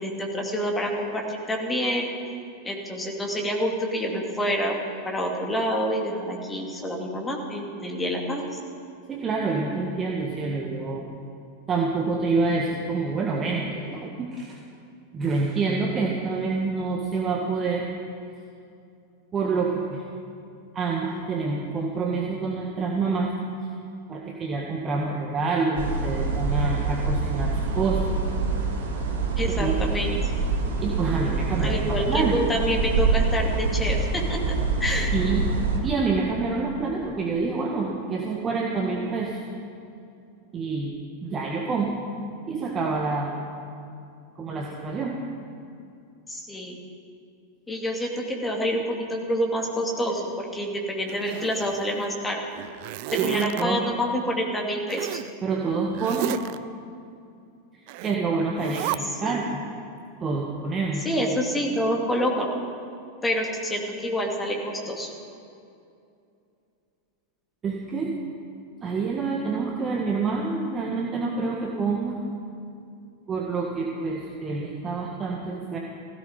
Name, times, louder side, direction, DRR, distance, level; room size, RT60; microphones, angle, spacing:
voice 1, 0.0-2.1 2.6-4.8 5.0-8.4 29.4-30.2 31.6-35.1 46.3-46.8 47.7-52.4 53.1-55.2 59.2-59.4 61.0-62.5 63.2-65.1, equal, 10° left, 0 dB, 2.6 m, -27 dB
voice 2, 9.1-11.1 11.7-14.6 15.1-17.8 19.3-20.0 20.7-23.3 24.1-28.0 29.4-29.9 30.8-32.4 35.1-35.5 35.8-39.4 40.5-40.9 41.2-41.9 42.5-43.4 44.4-45.2 53.2-53.8 55.4-56.4 57.7-59.6 60.2-61.0 67.6-68.2 68.8-72.2 73.3-75.8, right 4 dB, 25° right, -1 dB, 1.7 m, -27 dB
sound 1, 25.8-35.8, right 4 dB, 65° right, 2.4 m, -25 dB
Zipper (clothing), 51.1-52.1 52.5-53.6 54.9-55.3 55.9-56.6 57.9-58.2 58.6-59.0, right 16 dB, 45° right, 0.5 m, -32 dB
17.0 x 16.0 x 5.2 m, 2.5 s
figure-of-eight pair, 90°, 0 cm